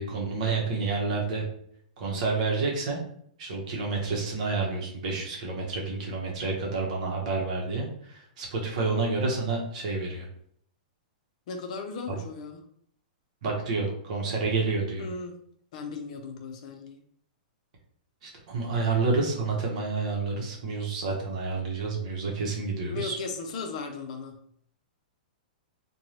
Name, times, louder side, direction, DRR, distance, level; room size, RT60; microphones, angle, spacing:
voice 1, 0.0-1.4 2.0-3.0 3.4-10.3 13.4-15.1 18.2-23.2, right 4 dB, 55° right, 0 dB, 0.8 m, -29 dB
voice 2, 11.5-12.6 15.0-15.4 15.7-17.0 22.9-24.4, left 4 dB, 50° left, 4 dB, 0.6 m, -36 dB
2.6 x 2.2 x 3.2 m, 0.66 s
hypercardioid pair, 155°, 5 cm